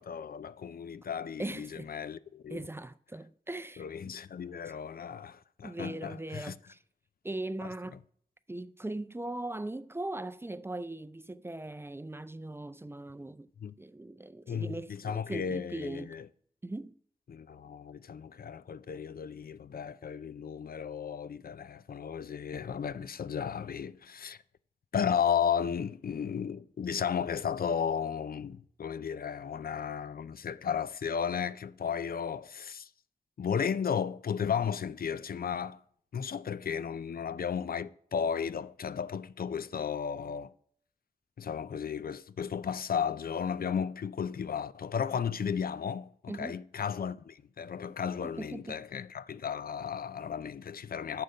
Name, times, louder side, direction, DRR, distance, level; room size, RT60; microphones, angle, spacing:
voice 1, 0.0-2.6 3.8-6.5 13.6-13.7 14.5-16.3 17.3-24.4 24.9-32.9 33.4-35.8 36.1-40.5 41.4-51.2, left 7 dB, 75° left, 0.4 m, -34 dB
voice 2, 1.4-1.9 2.5-4.2 5.6-6.8 7.2-8.0 8.5-13.5 13.8-16.1 16.6-17.0 46.3-46.6 48.2-48.8, right 2 dB, 15° right, 0.4 m, -40 dB
11.5 x 6.8 x 5.3 m
wide cardioid pair, 100°, 15 cm